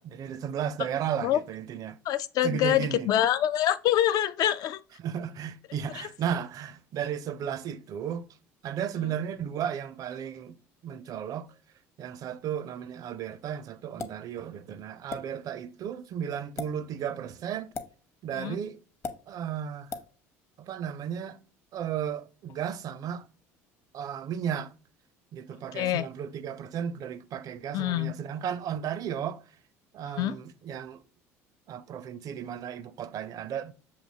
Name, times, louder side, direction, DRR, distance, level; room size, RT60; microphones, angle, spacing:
voice 1, 0.0-2.0 2.4-3.1 5.0-8.3 8.6-10.6 10.8-11.5 12.0-17.7 18.2-18.8 19.3-19.9 20.6-21.4 21.7-23.3 23.9-24.7 25.3-29.4 29.9-31.0 31.7-33.7, right 8 dB, 50° right, 0.5 m, -34 dB
voice 2, 2.1-4.8 5.9-6.1 9.0-9.1 18.3-18.6 25.7-26.1 27.7-28.1 30.2-30.4, left 12 dB, 55° left, 0.4 m, -26 dB
sound 1, 14.0-14.2 15.1-15.2 16.4-16.7 17.7-17.9 19.0-19.2 19.9-20.1, left 4 dB, 35° left, 0.8 m, -35 dB
6.6 x 2.7 x 2.7 m
hypercardioid pair, 75°, 8 cm